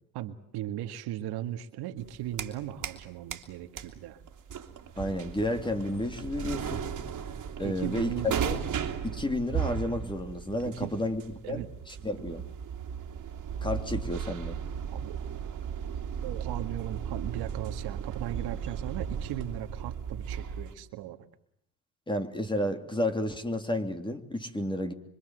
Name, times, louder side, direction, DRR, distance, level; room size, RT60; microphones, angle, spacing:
voice 1, 0.1-4.2 7.6-8.3 10.7-11.0 11.4-11.7 14.9-15.2 16.2-21.2, right 12 dB, 70° right, 8 dB, 1.9 m, -37 dB
sound 1, 2.0-3.0 3.3-20.8, right 7 dB, 45° right, 2.9 m, -36 dB
voice 2, 5.0-6.9 7.6-8.6 9.0-11.2 11.5-12.4 13.6-14.6 22.1-24.9, left 1 dB, 10° left, 7 dB, 3.2 m, -31 dB
25.0 x 25.0 x 7.9 m, 0.71 s
supercardioid pair, 90°, 40 cm